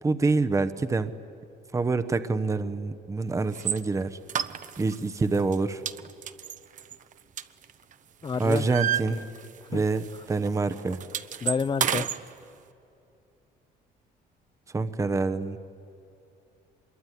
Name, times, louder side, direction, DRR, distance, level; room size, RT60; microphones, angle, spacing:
voice 1, 0.0-1.1 1.7-4.2 4.8-5.8 8.4-9.2 9.7-11.0 14.7-15.6, right 3 dB, 20° right, 10 dB, 1.0 m, -26 dB
sound 1, 3.5-3.8 4.3-5.0 5.3-5.6 5.9-7.9 8.2-9.7 10.0-10.2 10.4-12.2, right 9 dB, 50° right, 1.0 m, -30 dB
voice 2, 8.2-8.7 9.1-9.2 9.7-9.8 11.4-12.1, left 5 dB, 30° left, 18 dB, 0.8 m, -29 dB
25.0 x 22.5 x 10.0 m, 2.7 s
cardioid pair, 110°, 17 cm